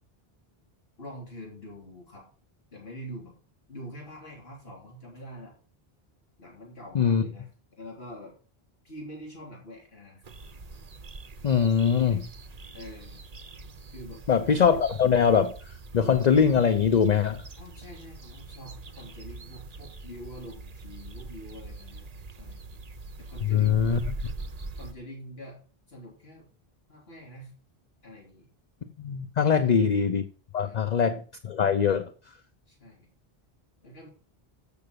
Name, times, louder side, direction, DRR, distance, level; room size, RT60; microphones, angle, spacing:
voice 1, 1.0-2.3 2.7-3.3 3.7-5.5 6.4-7.5 7.8-8.3 8.8-10.2 12.1-12.2 12.7-13.2 13.9-14.2 17.6-22.1 22.4-22.8 23.2-24.0 24.8-25.6 25.9-26.5 26.9-27.5 28.0-28.5 29.4-29.9 30.6-30.9 32.7-33.1 33.8-34.1, equal, 75° left, -2 dB, 3.6 m, -45 dB
sound 1, 10.2-24.9, right 3 dB, 40° right, 0.8 m, -42 dB
voice 2, 11.4-12.2 14.3-17.4 23.4-24.0 29.0-30.2 30.5-32.1, left 7 dB, 50° left, 9 dB, 0.7 m, -22 dB
7.8 x 6.8 x 6.7 m, 0.40 s
omnidirectional pair, 1.0 m